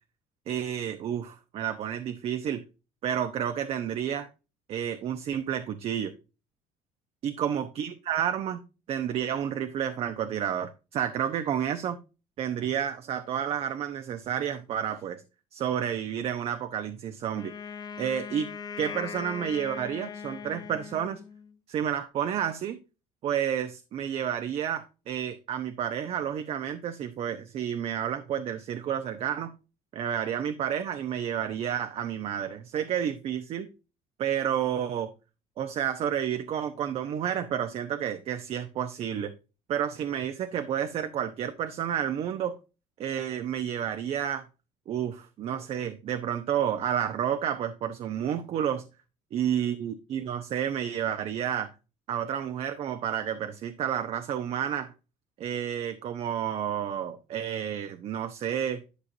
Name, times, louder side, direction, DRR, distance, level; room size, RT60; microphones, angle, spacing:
voice 1, 0.5-2.6 3.0-4.3 4.7-6.1 7.2-8.6 8.9-12.0 12.4-15.2 15.5-17.5 18.0-18.5 18.8-21.2 21.7-22.8 23.2-29.5 29.9-33.7 34.2-35.1 35.6-39.3 39.7-42.6 43.0-44.5 44.9-48.9 49.3-51.7 52.1-54.9 55.4-58.8, right 9 dB, 50° right, 8 dB, 0.9 m, -30 dB
Wind instrument woodwind instrument, 17.3-21.6, left 6 dB, 30° left, 0.7 m, -40 dB
11.5 x 5.7 x 2.7 m, 0.31 s
cardioid pair, 120°, 13 cm